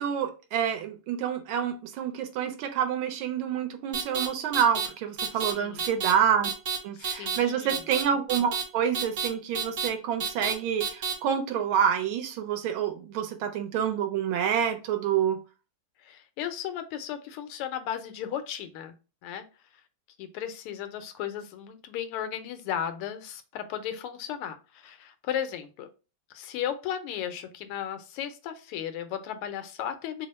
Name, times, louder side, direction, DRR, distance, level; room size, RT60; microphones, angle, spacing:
voice 1, 0.0-6.5 6.8-15.4, right 8 dB, 75° right, 1.3 m, -27 dB
sound 1, 3.9-4.3 4.5-4.9 5.2-5.5 5.8-6.1 6.4-6.8 7.0-7.4 7.7-8.0 8.3-8.6 8.9-9.3 9.6-9.9 10.2-10.5 10.8-11.1, right 6 dB, 55° right, 0.9 m, -29 dB
voice 2, 5.3-5.8 6.9-7.8 16.0-18.9 19.2-19.4 20.2-25.9 26.3-30.3, left 9 dB, 90° left, 1.5 m, -35 dB
3.6 x 2.0 x 4.0 m
omnidirectional pair, 2.4 m